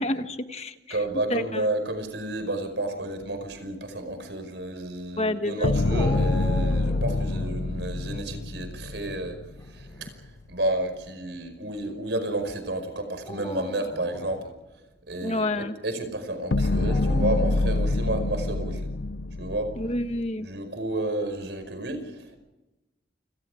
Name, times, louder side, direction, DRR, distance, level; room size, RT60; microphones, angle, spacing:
voice 1, 0.0-1.0 1.3-1.7 5.2-5.7 15.2-15.7 19.8-20.5, left 1 dB, 35° left, 9 dB, 1.3 m, -29 dB
voice 2, 0.9-9.4 9.7-10.1 10.5-14.5 15.1-18.9 19.4-19.7 20.4-22.4, right 1 dB, 70° right, 8 dB, 5.3 m, -31 dB
sound 1, 5.6-9.9 16.5-20.3, left 2 dB, 75° left, 0.8 m, -26 dB
Dog, 5.9-7.6 9.6-10.1 10.9-11.0 13.1-14.4 16.9-17.9, equal, 15° left, 5.3 m, -37 dB
29.5 x 27.5 x 5.0 m, 1.0 s
head